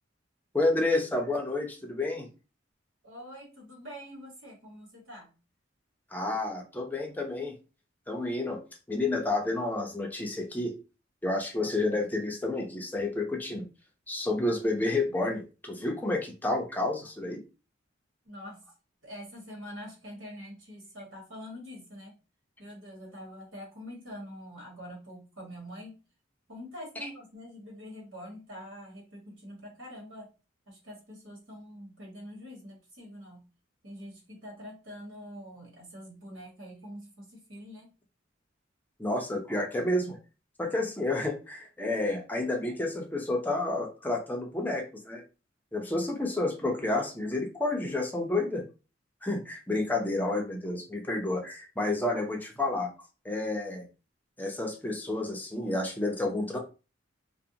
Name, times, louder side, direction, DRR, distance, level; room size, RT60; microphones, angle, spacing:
voice 1, 0.5-2.3 6.1-7.5 8.1-8.6 8.9-10.8 11.2-13.7 14.1-17.4 39.0-40.2 40.6-45.2 45.7-48.6 49.2-52.9 53.2-53.8 54.4-56.6, left 2 dB, 10° left, 1 dB, 0.5 m, -30 dB
voice 2, 3.0-5.3 18.2-18.6 19.0-22.2 22.6-26.0 26.5-30.3 30.7-33.4 33.8-37.9, equal, 90° right, -1 dB, 1.2 m, -45 dB
2.5 x 2.1 x 2.7 m, 0.32 s
head